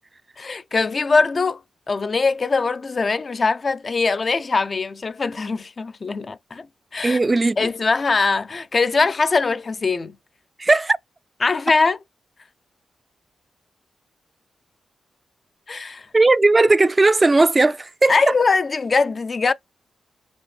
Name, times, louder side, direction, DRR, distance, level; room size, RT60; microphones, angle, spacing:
voice 1, 0.4-1.6 1.9-6.7 6.9-7.2 7.6-10.1 11.4-12.0 15.7-16.1 18.1-19.5, left 4 dB, 45° left, 0.3 m, -21 dB
voice 2, 7.0-7.7 10.6-11.0 16.1-18.3, right 2 dB, 30° right, 0.3 m, -17 dB
5.1 x 2.6 x 3.1 m
supercardioid pair, 50°, 0 cm